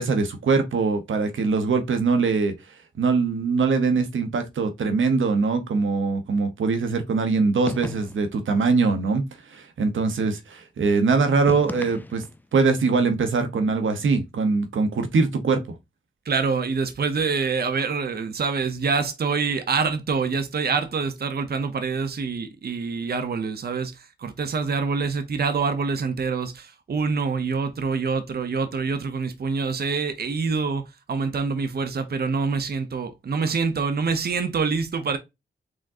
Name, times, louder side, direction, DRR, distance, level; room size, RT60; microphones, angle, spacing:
voice 1, 0.0-2.5 3.0-9.2 9.5-12.2 12.5-15.8, right 4 dB, 80° right, 1.0 m, -22 dB
sound 1, 7.7-8.4 11.5-12.5, left 2 dB, 10° left, 0.4 m, -35 dB
voice 2, 16.2-35.2, right 5 dB, 55° right, 0.8 m, -26 dB
5.0 x 3.6 x 2.6 m
cardioid pair, 80°, 20 cm